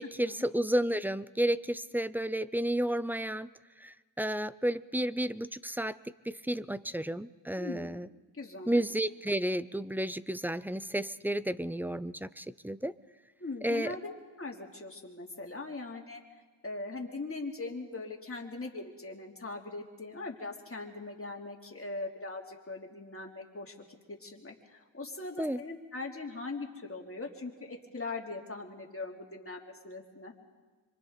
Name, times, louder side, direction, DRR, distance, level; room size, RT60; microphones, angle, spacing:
voice 1, 0.0-3.5 3.8-6.0 6.3-8.1 8.7-12.9 13.6-13.9 25.4-25.6, right 1 dB, 5° right, 16 dB, 0.5 m, -32 dB
voice 2, 7.6-7.9 8.3-8.8 13.4-16.2 16.6-30.3, left 3 dB, 30° left, 1 dB, 3.1 m, -41 dB
26.5 x 25.0 x 4.1 m, 1.4 s
cardioid pair, 70°, 47 cm